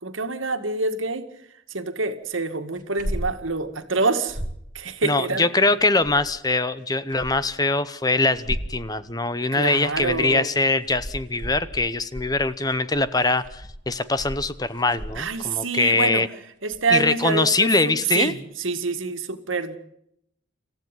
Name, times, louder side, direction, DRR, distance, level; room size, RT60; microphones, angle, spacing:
voice 1, 0.0-1.3 1.7-4.4 4.7-5.5 9.6-10.5 15.1-16.3 16.6-19.8, right 4 dB, 80° right, 9 dB, 2.1 m, -26 dB
sound 1, 2.8-3.4 3.7-3.8 4.1-4.7 5.8-6.4 6.9-7.6 8.3-8.8 9.6-10.3 10.7-15.4 16.7-17.0 17.7-17.8, equal, 40° right, 2.6 m, -35 dB
voice 2, 5.0-16.3 16.9-18.3, left 3 dB, 20° left, 14 dB, 0.8 m, -22 dB
27.0 x 15.0 x 9.1 m, 0.76 s
head